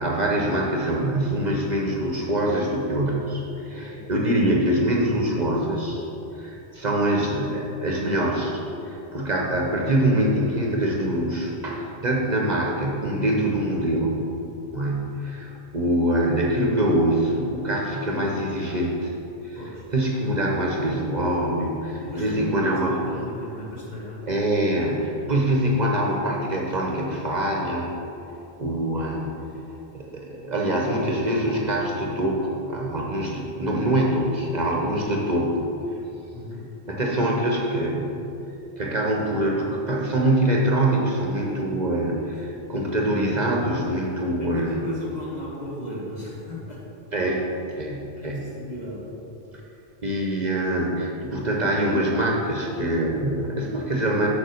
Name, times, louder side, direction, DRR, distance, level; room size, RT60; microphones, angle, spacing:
voice 1, 0.0-6.0 6.4-14.2 14.7-19.1 19.4-19.6 19.9-23.0 24.3-27.9 28.6-29.3 29.9-35.7 36.9-38.3 38.8-44.8 47.1-47.4 47.8-48.5 50.0-54.3, right 1 dB, 45° right, -1 dB, 0.9 m, -24 dB
voice 2, 3.6-4.6 14.8-15.2 19.5-19.9 22.0-24.2 36.2-36.6 42.2-42.3 44.4-46.9 48.2-49.1, left 1 dB, 40° left, -7 dB, 2.1 m, -37 dB
6.8 x 5.0 x 6.4 m, 2.9 s
omnidirectional pair, 1.1 m